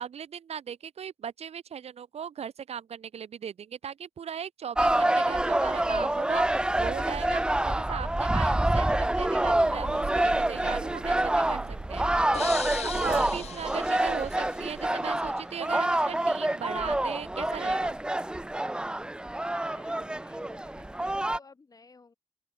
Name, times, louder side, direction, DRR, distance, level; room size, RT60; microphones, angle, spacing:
voice 1, 0.0-18.0, right 8 dB, 70° right, 1.2 m, -38 dB
sound 1, 4.8-21.4, right 1 dB, 10° right, 0.5 m, -27 dB
sound 2, 9.6-14.9, right 6 dB, 55° right, 2.0 m, -41 dB
sound 3, 12.3-15.1, left 8 dB, 75° left, 1.1 m, -40 dB
voice 2, 19.4-22.1, left 4 dB, 35° left, 4.9 m, -55 dB
open air
wide cardioid pair, 135°, 11 cm